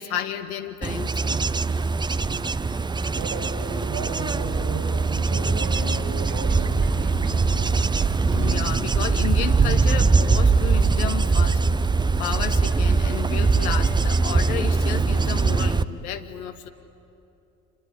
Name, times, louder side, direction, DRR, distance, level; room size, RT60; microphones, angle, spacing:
voice 1, 0.0-1.4 8.3-11.9 12.2-16.7, left 9 dB, 70° left, 7 dB, 1.2 m, -32 dB
Bird / Insect / Wind, 0.8-15.8, right 4 dB, 10° right, 0.6 m, -22 dB
voice 2, 3.1-6.7 7.0-7.7, right 5 dB, 50° right, 2 dB, 4.4 m, -35 dB
sound 1, 5.6-9.6, right 4 dB, 70° right, 3.2 m, -39 dB
26.5 x 22.0 x 9.9 m, 2.8 s
figure-of-eight pair, 55°, 44 cm